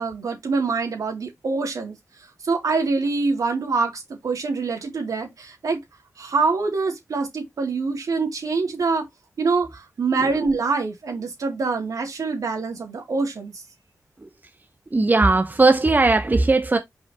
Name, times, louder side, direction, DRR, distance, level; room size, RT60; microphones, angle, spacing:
voice 1, 0.0-2.0 2.4-5.8 6.2-9.1 9.4-13.6, right 4 dB, 80° right, 2.9 m, -25 dB
voice 2, 14.9-16.8, right 3 dB, 30° right, 1.0 m, -18 dB
6.0 x 5.2 x 3.0 m
cardioid pair, 55°, 6 cm